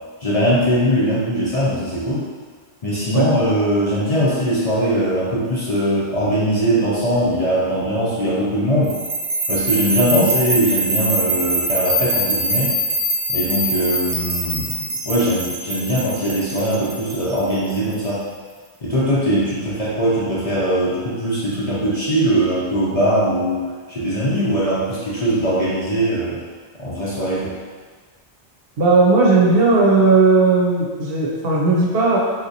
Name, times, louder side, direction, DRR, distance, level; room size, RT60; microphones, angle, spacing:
voice 1, 0.2-2.3 2.8-8.9 9.5-12.7 13.3-14.8 15.0-18.3 18.8-26.4 26.8-27.5, equal, 40° left, -8 dB, 0.6 m, -20 dB
sound 1, 8.9-17.9, right 1 dB, 45° right, 0.7 m, -23 dB
voice 2, 28.8-32.2, right 3 dB, 70° right, -4 dB, 0.9 m, -16 dB
3.6 x 2.8 x 2.7 m, 1.5 s
omnidirectional pair, 1.1 m